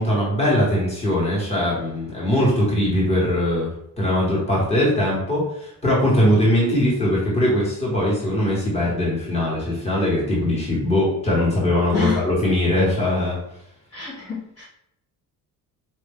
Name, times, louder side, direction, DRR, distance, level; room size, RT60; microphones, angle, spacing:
voice 1, 0.0-3.7 4.0-13.4, left 1 dB, 20° left, -5 dB, 1.4 m, -21 dB
voice 2, 11.9-12.3 13.9-14.6, left 5 dB, 45° left, -6 dB, 1.2 m, -28 dB
4.3 x 2.6 x 3.5 m, 0.76 s
cardioid pair, 165°, 34 cm